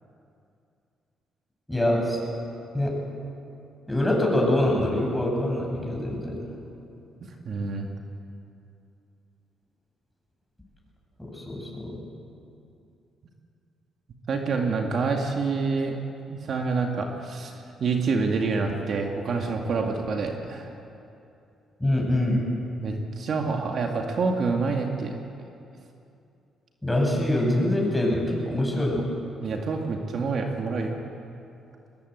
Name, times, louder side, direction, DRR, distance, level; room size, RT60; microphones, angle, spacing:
voice 1, 1.7-2.2 2.7-3.0 3.9-6.4 11.2-12.0 21.8-22.4 26.8-29.1, left 1 dB, 5° left, -1 dB, 7.4 m, -24 dB
voice 2, 7.2-7.9 14.3-16.0 16.3-17.5 17.8-20.7 22.8-25.2 29.4-31.0, right 4 dB, 55° right, 2 dB, 2.2 m, -27 dB
22.5 x 20.5 x 8.2 m, 2.6 s
cardioid pair, 90°, 0 cm